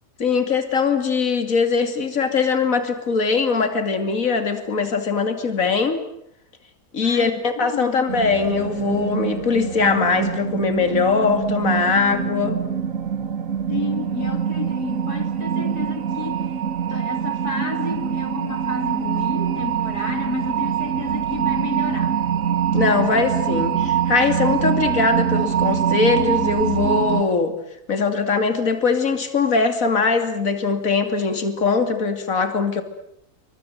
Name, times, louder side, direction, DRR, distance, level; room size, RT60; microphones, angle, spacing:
voice 1, 0.2-6.0 6.9-12.6 22.7-27.6 27.9-32.8, left 4 dB, 60° left, 3.1 m, -21 dB
voice 2, 7.0-8.2 13.7-16.5 16.9-22.2, left 5 dB, 80° left, 3.0 m, -32 dB
sound 1, 8.1-27.2, right 8 dB, 60° right, 1.6 m, -24 dB
28.0 x 24.0 x 7.9 m
omnidirectional pair, 1.6 m